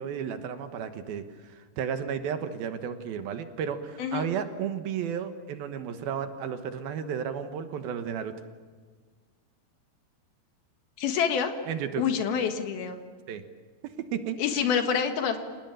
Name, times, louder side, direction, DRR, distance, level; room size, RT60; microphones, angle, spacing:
voice 1, 0.0-8.3 11.7-12.0 13.3-13.4 13.8-14.4, right 8 dB, 70° right, 8 dB, 3.0 m, -33 dB
voice 2, 11.0-11.5 12.0-13.0 14.4-15.4, left 7 dB, 70° left, 6 dB, 3.4 m, -27 dB
28.0 x 18.5 x 9.1 m, 1.5 s
omnidirectional pair, 4.6 m